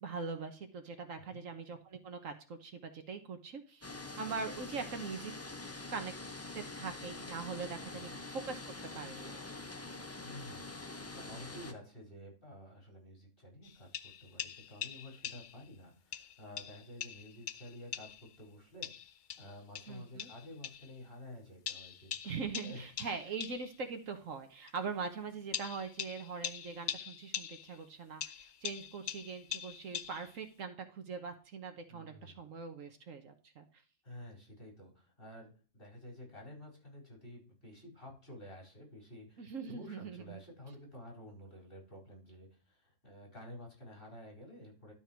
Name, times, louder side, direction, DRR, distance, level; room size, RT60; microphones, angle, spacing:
voice 1, 0.0-3.9 4.2-5.3 5.9-6.1 6.5-8.6 8.9-9.4 19.9-20.3 22.2-33.7 39.4-40.4, right 5 dB, 70° right, 6 dB, 1.5 m, -42 dB
sound 1, 3.8-11.7, left 3 dB, 15° left, 0.5 m, -45 dB
voice 2, 10.2-10.7 11.1-18.9 19.3-22.2 22.6-22.9 31.9-32.5 34.0-44.9, left 1 dB, 40° left, -1 dB, 4.7 m, -51 dB
sound 2, 13.6-15.7 16.1-18.4 18.8-20.9 21.7-23.8 24.7-24.8 25.5-27.8 28.2-30.5, left 9 dB, 70° left, 0.4 m, -43 dB
12.5 x 4.5 x 4.5 m, 0.37 s
omnidirectional pair, 1.5 m